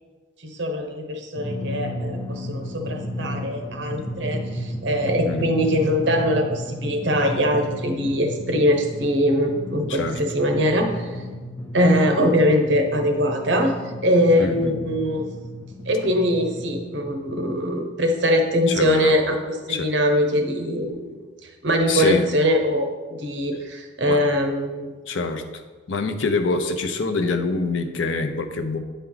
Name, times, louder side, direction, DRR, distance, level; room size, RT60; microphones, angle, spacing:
voice 1, 0.4-11.1 11.7-13.8 14.0-15.2 15.9-21.2 21.6-24.9, equal, 60° right, 4 dB, 0.9 m, -22 dB
Drum, 1.4-17.5, left 1 dB, 15° left, 0.5 m, -33 dB
voice 2, 9.9-10.2 14.4-15.0 18.7-19.2 19.7-19.9 21.9-22.3 24.1-24.2 25.1-25.6 25.9-28.8, left 3 dB, 70° left, 7 dB, 0.6 m, -25 dB
8.3 x 4.5 x 3.9 m, 1.4 s
head